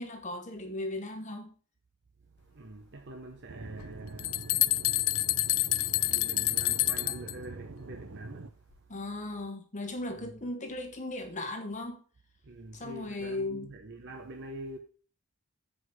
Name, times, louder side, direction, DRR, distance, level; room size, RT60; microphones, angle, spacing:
voice 1, 0.0-1.5 8.9-12.0 12.7-13.7, left 2 dB, 35° left, 1.2 m, -37 dB
voice 2, 2.4-9.0 9.4-9.5 10.1-10.3 12.4-14.8, right 2 dB, 55° right, 0.9 m, -46 dB
Aircraft / Engine, 3.5-8.5, right 3 dB, 85° right, 0.7 m, -44 dB
sound 1, 3.8-3.9 4.2-7.3, left 18 dB, 85° left, 0.4 m, -28 dB
8.0 x 5.1 x 6.3 m
head